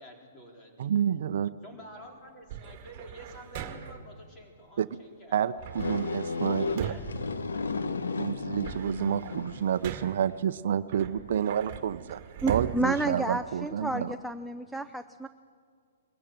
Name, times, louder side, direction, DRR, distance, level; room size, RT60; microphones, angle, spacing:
voice 1, 0.0-0.9 1.6-5.5 6.5-7.8, equal, 20° left, 1 dB, 4.3 m, -49 dB
voice 2, 0.8-1.5 4.8-4.9 5.3-6.9 8.2-12.2 12.5-14.1, right 9 dB, 60° right, 13 dB, 0.6 m, -29 dB
sound 1, 2.5-4.1 5.6-8.0 8.4-10.3 10.9-13.9, right 8 dB, 35° right, 2.0 m, -40 dB
sound 2, 5.7-9.8, left 4 dB, 90° left, 1.2 m, -33 dB
voice 3, 12.4-15.3, right 2 dB, ahead, 7 dB, 0.5 m, -31 dB
22.0 x 14.5 x 9.1 m, 2.2 s
hypercardioid pair, 150°, 0 cm